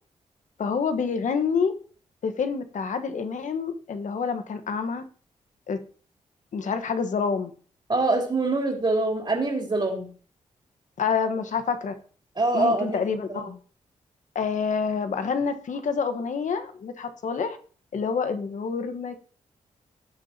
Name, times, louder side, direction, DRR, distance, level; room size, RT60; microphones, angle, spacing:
voice 1, 0.6-1.7 2.2-5.0 5.7-5.8 6.5-7.5 11.0-11.9 12.5-13.5 14.3-17.6 17.9-19.2, left 5 dB, 65° left, 8 dB, 1.3 m, -27 dB
voice 2, 7.9-10.1 12.4-13.5, right 2 dB, 40° right, 1 dB, 3.2 m, -25 dB
16.5 x 6.5 x 2.8 m, 0.42 s
supercardioid pair, 50°, 14 cm